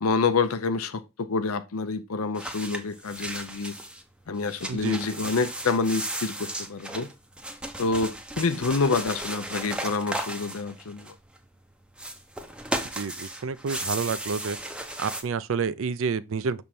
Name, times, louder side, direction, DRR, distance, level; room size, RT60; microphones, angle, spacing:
voice 1, 0.0-3.8 4.3-7.1 7.8-11.1, left 4 dB, 85° left, 0.7 m, -27 dB
sound 1, 2.3-4.0 4.4-11.4 11.9-15.2, right 1 dB, 5° right, 0.6 m, -35 dB
voice 2, 12.9-14.6 15.0-16.6, right 5 dB, 65° right, 0.4 m, -29 dB
6.2 x 3.5 x 4.3 m
head